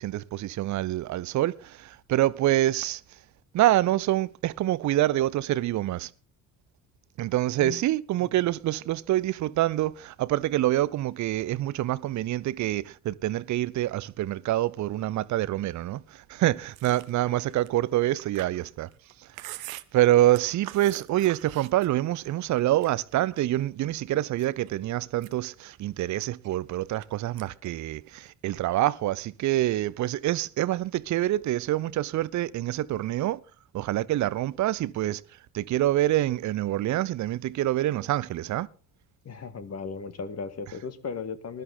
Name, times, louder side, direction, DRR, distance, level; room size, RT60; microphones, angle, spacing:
voice 1, 0.0-3.0 3.5-6.1 7.2-18.9 19.9-33.4 33.7-35.2 35.5-38.7, right 14 dB, 40° right, 0.8 m, -26 dB
Chewing mastication, 16.7-22.2 22.5-23.6 24.1-24.7 25.1-27.1 27.4-27.7 28.0-28.8, right 16 dB, 70° right, 0.8 m, -45 dB
voice 2, 39.2-41.6, left 5 dB, 35° left, 1.8 m, -36 dB
20.0 x 13.0 x 3.8 m
figure-of-eight pair, 50°, 43 cm